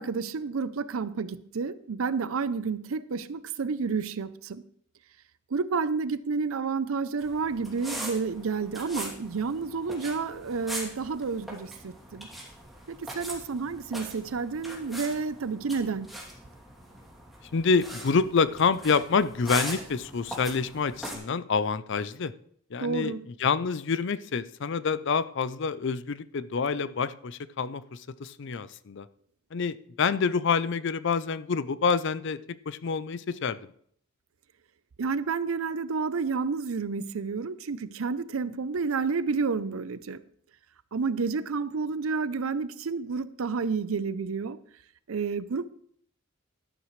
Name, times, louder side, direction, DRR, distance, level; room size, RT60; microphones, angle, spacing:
voice 1, 0.0-4.6 5.5-12.3 12.9-16.1 22.8-23.2 35.0-40.2 40.9-44.6 45.1-45.7, right 4 dB, 85° right, 0.6 m, -30 dB
sound 1, 7.2-21.2, right 1 dB, ahead, 2.7 m, -41 dB
voice 2, 17.5-22.3 22.7-29.1 29.5-33.7, left 5 dB, 60° left, 0.5 m, -27 dB
12.5 x 11.5 x 3.2 m
head